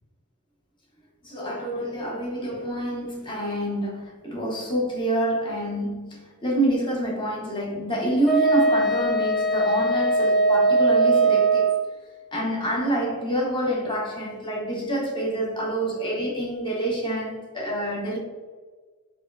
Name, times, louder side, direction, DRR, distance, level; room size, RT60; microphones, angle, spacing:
voice 1, 1.2-11.7 12.3-18.2, right 1 dB, 20° left, -2 dB, 0.8 m, -27 dB
Wind instrument woodwind instrument, 8.3-11.8, right 3 dB, ahead, 0.4 m, -20 dB
4.6 x 3.0 x 2.4 m, 1.4 s
head